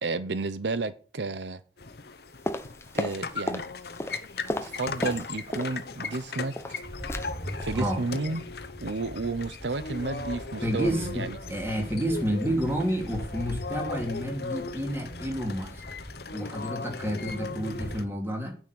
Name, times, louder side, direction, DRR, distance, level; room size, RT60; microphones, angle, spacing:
voice 1, 0.0-1.6 2.9-3.6 4.6-6.5 7.6-8.4 8.8-11.4, right 3 dB, 85° right, 0.8 m, -32 dB
sound 1, 1.8-18.1, left 4 dB, 60° left, 1.0 m, -38 dB
sound 2, 2.5-3.7 4.0-5.8 6.0-6.8 7.1-7.3 7.6-7.8 8.1-8.4 8.6-8.7, left 1 dB, 15° left, 0.8 m, -34 dB
sound 3, 6.8-17.9, equal, 50° right, 5.7 m, -41 dB
voice 2, 10.6-15.8 16.3-18.6, equal, 15° right, 2.8 m, -30 dB
9.7 x 6.4 x 8.7 m
head